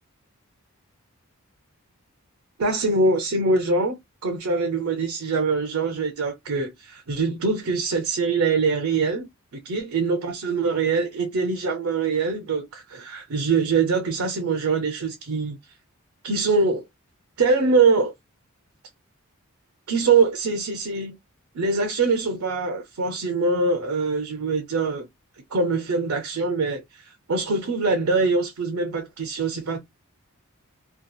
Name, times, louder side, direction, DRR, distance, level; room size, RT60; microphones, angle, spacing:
voice 1, 2.6-4.0 4.2-15.6 16.2-16.8 17.4-18.1 19.9-21.2 21.5-25.1 25.5-29.8, right 4 dB, 80° right, 0.6 m, -23 dB
2.7 x 2.3 x 2.2 m
head